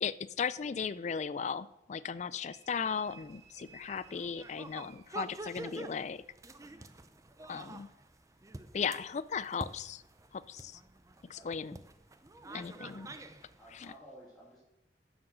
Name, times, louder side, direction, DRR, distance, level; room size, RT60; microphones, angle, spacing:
voice 1, 0.0-6.2 7.5-7.9 8.7-10.0 10.3-10.8 11.3-11.8 12.5-13.1 13.7-13.9, left 6 dB, 40° left, 16 dB, 0.4 m, -36 dB
sound 1, 2.5-5.8, right 6 dB, 70° right, 1.1 m, -59 dB
sound 2, 3.1-13.9, right 2 dB, 20° right, 0.6 m, -48 dB
voice 2, 12.4-13.2 13.6-14.6, equal, ahead, -9 dB, 3.5 m, -55 dB
9.8 x 7.2 x 6.3 m, 0.88 s
head